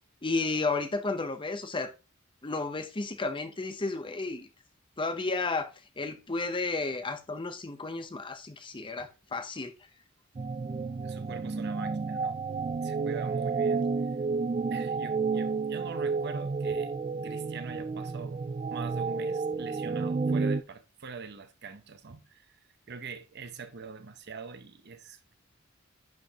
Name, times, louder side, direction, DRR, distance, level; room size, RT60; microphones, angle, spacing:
voice 1, 0.2-1.9 2.4-4.5 5.0-5.7 6.0-9.7, left 3 dB, 25° left, 0.8 m, -32 dB
sound 1, 10.4-20.6, right 4 dB, 30° right, 0.3 m, -31 dB
voice 2, 11.0-12.4 12.8-13.9 14.7-16.9 17.2-18.4 18.7-22.6 22.9-25.3, right 5 dB, 55° right, 0.8 m, -43 dB
10.5 x 5.1 x 2.9 m
head